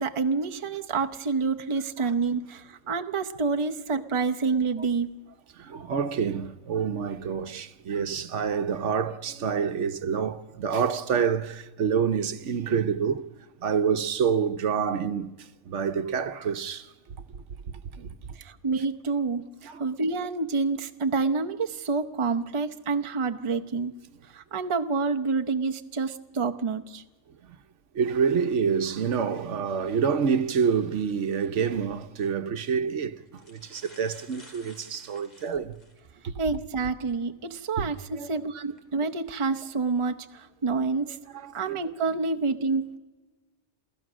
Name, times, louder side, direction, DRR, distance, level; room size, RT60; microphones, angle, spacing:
voice 1, 0.0-5.1 18.4-23.9 24.3-27.0 36.4-41.2 41.5-43.0, right 4 dB, 30° right, 0.8 m, -28 dB
voice 2, 5.6-13.3 13.6-15.3 15.7-16.9 18.0-18.1 19.6-19.8 28.0-33.2 33.5-35.7 36.2-36.3 37.8-38.3 41.3-41.8, right 6 dB, 70° right, 1.2 m, -27 dB
sound 1, 32.0-32.1 32.9-33.0 33.3-36.1 36.6-36.7 38.6-38.8 39.4-39.7, left 1 dB, 35° left, 2.4 m, -53 dB
28.0 x 15.5 x 6.2 m
omnidirectional pair, 1.3 m